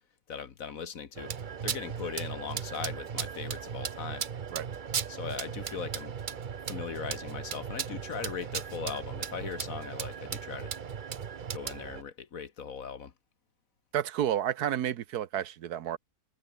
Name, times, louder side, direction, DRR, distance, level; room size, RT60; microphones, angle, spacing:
voice 1, 0.3-1.3 1.6-4.3 5.1-6.1 6.7-10.7 11.5-13.1, left 6 dB, 55° left, 1.7 m, -39 dB
sound 1, 1.2-12.0, right 7 dB, 45° right, 0.6 m, -37 dB
voice 2, 13.9-16.0, right 10 dB, 65° right, 1.4 m, -30 dB
omnidirectional pair, 1.8 m